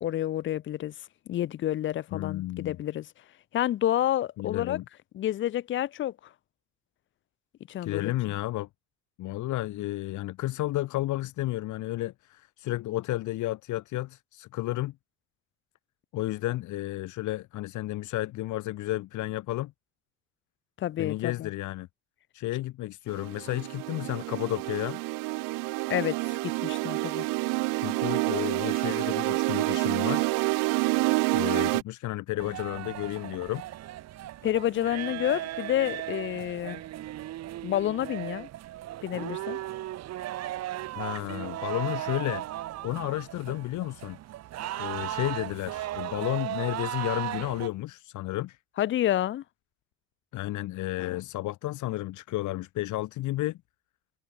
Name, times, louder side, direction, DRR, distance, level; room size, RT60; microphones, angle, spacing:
voice 1, 0.0-0.9 1.3-3.1 3.5-4.8 5.1-6.1 7.7-8.1 20.8-21.5 25.9-26.2 26.4-27.2 34.4-36.8 37.6-38.5 39.0-39.6 48.8-49.4, left 12 dB, 35° left, 0.6 m, -29 dB
voice 2, 2.1-2.8 4.4-4.8 7.8-8.7 9.2-14.9 16.1-19.7 21.0-21.9 22.3-25.0 27.7-30.3 31.3-33.6 41.0-44.2 44.8-48.6 50.3-53.6, left 16 dB, 60° left, 2.6 m, -32 dB
sound 1, 23.1-31.8, right 26 dB, 75° right, 0.6 m, -28 dB
sound 2, 32.4-47.7, right 14 dB, 50° right, 1.7 m, -36 dB
cardioid pair, 145°, 33 cm